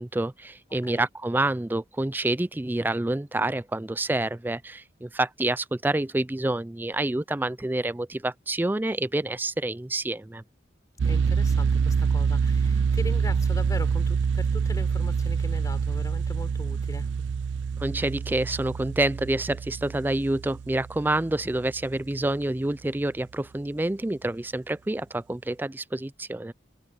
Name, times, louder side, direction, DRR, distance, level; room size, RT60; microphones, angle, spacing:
voice 1, 0.0-10.4 17.8-26.5, right 2 dB, 10° right, 0.3 m, -28 dB
voice 2, 0.7-1.1 11.0-17.1, left 1 dB, 20° left, 4.1 m, -40 dB
sound 1, 11.0-21.9, right 5 dB, 85° right, 0.4 m, -26 dB
head